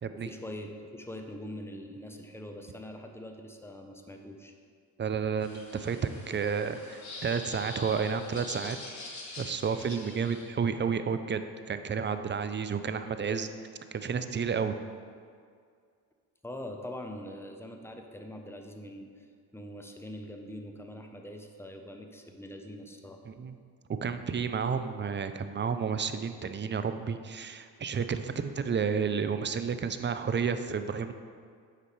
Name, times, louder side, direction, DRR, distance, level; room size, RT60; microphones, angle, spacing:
voice 1, 0.1-4.5 10.0-10.2 16.4-19.3 19.5-23.2, left 1 dB, 5° left, 4 dB, 0.9 m, -43 dB
voice 2, 5.0-6.0 6.3-8.8 9.4-11.4 11.7-13.5 13.9-14.7 23.3-23.6 24.0-31.1, right 6 dB, 25° right, 10 dB, 0.5 m, -31 dB
sound 1, 5.4-10.4, left 2 dB, 40° left, 1.8 m, -44 dB
8.6 x 5.5 x 3.3 m, 2.1 s
hypercardioid pair, 50°, 44 cm